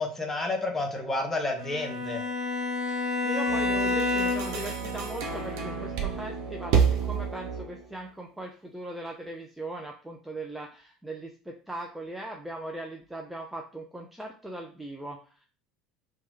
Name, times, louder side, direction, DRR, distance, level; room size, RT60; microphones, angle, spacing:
voice 1, 0.0-2.2, left 2 dB, 15° left, 2 dB, 0.8 m, -30 dB
Bowed string instrument, 1.6-4.7, left 3 dB, 85° left, 0.5 m, -29 dB
voice 2, 2.9-15.4, right 2 dB, 5° right, 1 dB, 0.4 m, -39 dB
sound 1, 3.5-7.9, right 6 dB, 55° right, 0.6 m, -29 dB
3.0 x 2.2 x 3.1 m, 0.39 s
figure-of-eight pair, 70°, 2 cm